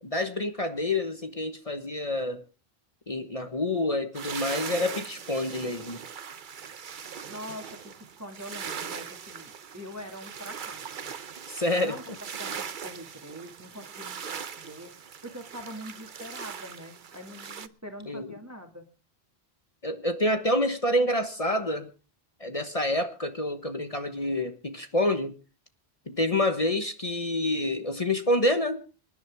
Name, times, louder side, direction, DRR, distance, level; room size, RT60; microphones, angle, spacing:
voice 1, 0.0-2.4 3.1-6.0 11.5-12.0 18.1-18.3 19.8-21.9 22.4-25.3 26.1-28.8, left 1 dB, 35° left, 8 dB, 1.3 m, -27 dB
sound 1, 4.1-17.7, right 7 dB, 55° right, 0.9 m, -40 dB
voice 2, 7.3-11.1 11.8-14.9 15.2-18.9, equal, 15° right, 4 dB, 2.2 m, -44 dB
26.0 x 11.0 x 3.5 m, 0.36 s
omnidirectional pair, 1.0 m